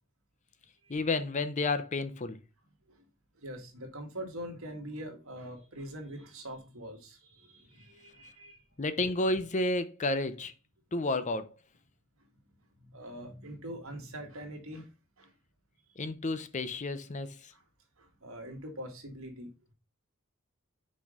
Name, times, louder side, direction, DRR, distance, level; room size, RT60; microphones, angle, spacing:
voice 1, 0.9-2.4 8.8-10.5 10.9-11.5 16.0-17.3, left 2 dB, 35° left, 0.6 m, -31 dB
voice 2, 3.4-8.6 12.8-14.9 15.2-15.3 17.5-17.6 18.0-19.5, equal, 75° right, 1.9 m, -43 dB
6.0 x 4.4 x 5.0 m
head